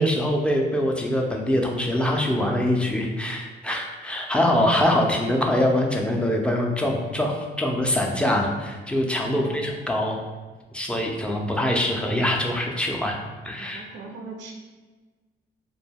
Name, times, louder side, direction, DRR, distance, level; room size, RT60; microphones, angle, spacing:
voice 1, 0.0-10.2 10.7-13.2 13.4-13.9, left 1 dB, 5° left, 0 dB, 0.4 m, -24 dB
voice 2, 13.7-14.5, right 4 dB, 65° right, 1 dB, 0.4 m, -39 dB
2.2 x 2.2 x 3.4 m, 1.3 s
cardioid pair, 90°, 20 cm